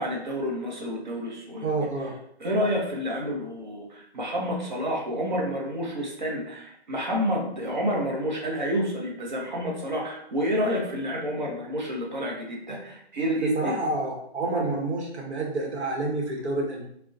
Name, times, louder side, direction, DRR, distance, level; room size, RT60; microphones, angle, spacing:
voice 1, 0.0-1.7 2.4-13.8, equal, 45° right, -1 dB, 0.6 m, -29 dB
voice 2, 1.6-2.1 13.4-16.9, right 2 dB, 90° right, -1 dB, 0.9 m, -28 dB
2.6 x 2.1 x 2.3 m, 0.71 s
hypercardioid pair, 175°, 33 cm